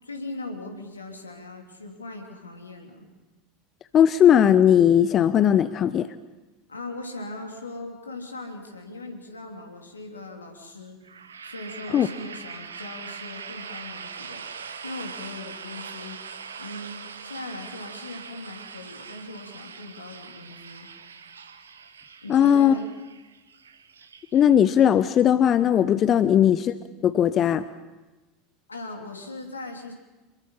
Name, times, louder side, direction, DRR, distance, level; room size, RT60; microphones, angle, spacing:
voice 1, 0.0-3.1 6.7-11.0 11.4-14.4 14.8-16.2 16.6-20.9 22.2-22.9 26.2-26.5 28.7-29.9, left 2 dB, 85° left, 3 dB, 3.1 m, -39 dB
voice 2, 3.9-6.1 11.9-12.1 22.3-22.7 24.3-26.7 27.0-27.6, left 9 dB, 35° left, 14 dB, 0.7 m, -18 dB
sound 1, 11.0-24.8, right 6 dB, 75° right, 1.2 m, -42 dB
27.0 x 22.0 x 5.7 m, 1.1 s
figure-of-eight pair, 75°, 0 cm